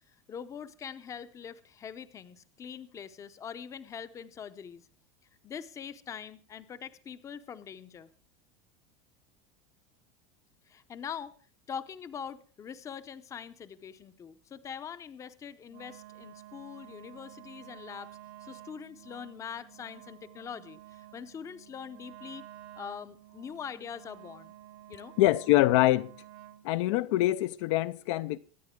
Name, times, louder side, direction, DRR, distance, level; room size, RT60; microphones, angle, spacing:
voice 1, 0.3-4.9 5.4-8.1 10.7-11.3 11.7-18.1 18.4-22.4 22.8-24.5 24.9-25.1, left 7 dB, 20° left, 0.7 m, -43 dB
Wind instrument woodwind instrument, 15.7-26.7, right 13 dB, 55° right, 1.2 m, -51 dB
voice 2, 25.2-26.1 26.6-28.4, left 16 dB, 60° left, 0.5 m, -24 dB
23.5 x 9.6 x 3.6 m
supercardioid pair, 160°, 17 cm